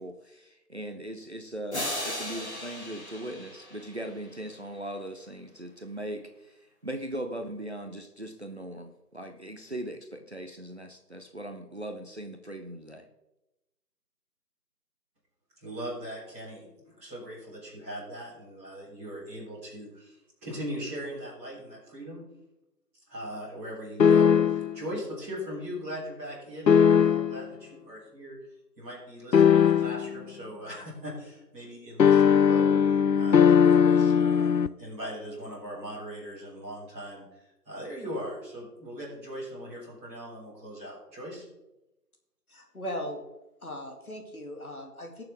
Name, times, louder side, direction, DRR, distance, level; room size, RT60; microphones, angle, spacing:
voice 1, 0.0-13.0, right 1 dB, 40° right, 5 dB, 0.8 m, -39 dB
sound 1, 1.7-4.6, left 1 dB, 40° left, 3.3 m, -36 dB
voice 2, 15.6-22.2 23.1-28.4 28.8-41.4, equal, 10° right, -13 dB, 3.9 m, -40 dB
sound 2, 24.0-24.8 26.7-27.5 29.3-30.2 32.0-34.7, left 7 dB, 85° left, 0.7 m, -19 dB
voice 3, 42.5-43.3 43.6-45.2, equal, 60° left, 2 dB, 2.4 m, -38 dB
19.5 x 6.9 x 3.7 m, 0.96 s
figure-of-eight pair, 165°, 49 cm